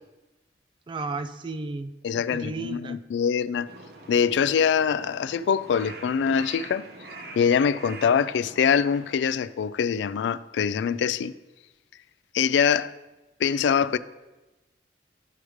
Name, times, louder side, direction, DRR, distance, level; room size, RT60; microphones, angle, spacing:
voice 1, 0.9-3.0, right 3 dB, 25° right, 0.3 m, -34 dB
voice 2, 2.0-3.7 4.1-6.9 7.4-11.3 12.3-12.9 13.4-14.0, left 7 dB, 90° left, 0.3 m, -24 dB
Crow, 3.7-9.2, right 2 dB, 65° right, 0.9 m, -44 dB
12.0 x 5.0 x 3.1 m
head